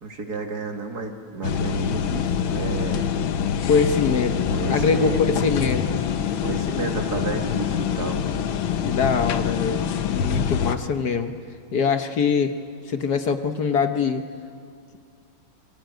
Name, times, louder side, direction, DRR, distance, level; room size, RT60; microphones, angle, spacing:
voice 1, 0.0-3.2 4.5-5.2 6.4-8.2, right 3 dB, 50° right, 4 dB, 2.6 m, -32 dB
sound 1, 1.4-10.8, left 7 dB, 75° left, 1.8 m, -25 dB
voice 2, 3.7-6.0 8.8-11.3 11.7-12.5 12.9-14.2, left 5 dB, 55° left, 8 dB, 1.5 m, -23 dB
26.5 x 23.5 x 9.2 m, 2.2 s
omnidirectional pair, 2.2 m